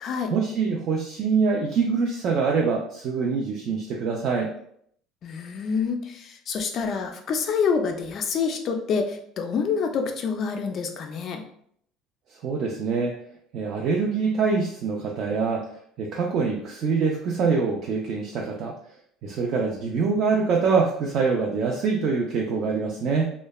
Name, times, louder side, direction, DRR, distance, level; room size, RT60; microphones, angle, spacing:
voice 1, 0.3-4.5 12.4-13.2 13.5-15.7 16.0-18.8 19.2-23.3, right 5 dB, 45° right, 0 dB, 0.3 m, -24 dB
voice 2, 5.2-11.4, left 5 dB, 35° left, 5 dB, 0.3 m, -27 dB
3.0 x 2.0 x 2.3 m, 0.66 s
cardioid pair, 165°, 0 cm